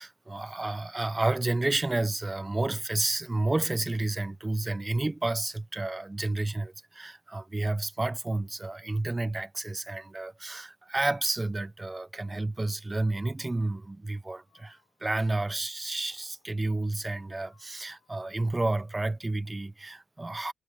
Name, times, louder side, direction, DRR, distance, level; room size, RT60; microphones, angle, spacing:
voice 1, 0.0-20.5, right 2 dB, 15° right, 0.4 m, -30 dB
Breathing, 14.4-15.5 16.0-16.7 17.4-18.4, left 10 dB, 90° left, 6.0 m, -70 dB
cardioid pair, 115°, 0 cm